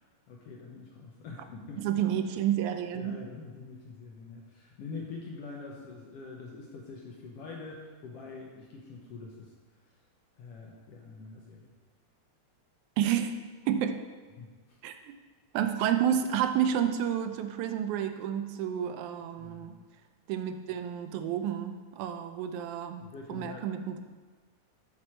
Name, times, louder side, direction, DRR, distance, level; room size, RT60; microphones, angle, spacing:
voice 1, 0.3-2.0 2.9-9.5 9.8-9.9 10.4-11.7 14.4-14.8 19.4-19.7 23.0-23.6, left 4 dB, 70° left, -2 dB, 1.5 m, -45 dB
voice 2, 1.8-3.2 13.0-13.4 13.7-14.0 14.8-15.1 15.5-19.8 20.3-23.0 23.3-24.0, right 9 dB, 90° right, 8 dB, 2.0 m, -30 dB
6.1 x 6.1 x 4.3 m, 1.4 s
omnidirectional pair, 3.3 m